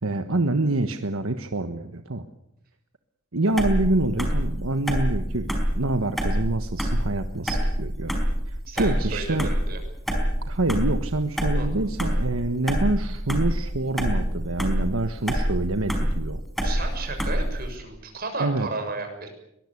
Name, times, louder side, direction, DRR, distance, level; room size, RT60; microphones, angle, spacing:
voice 1, 0.0-2.2 3.3-8.1 8.5-9.5 10.5-16.4 18.4-18.7, right 2 dB, 80° right, 7 dB, 1.4 m, -26 dB
sound 1, 3.6-17.7, equal, ahead, 4.6 m, -26 dB
voice 2, 8.7-9.8 11.5-11.7 16.6-19.3, right 3 dB, 45° right, 5 dB, 6.6 m, -33 dB
23.0 x 20.5 x 8.5 m, 0.80 s
head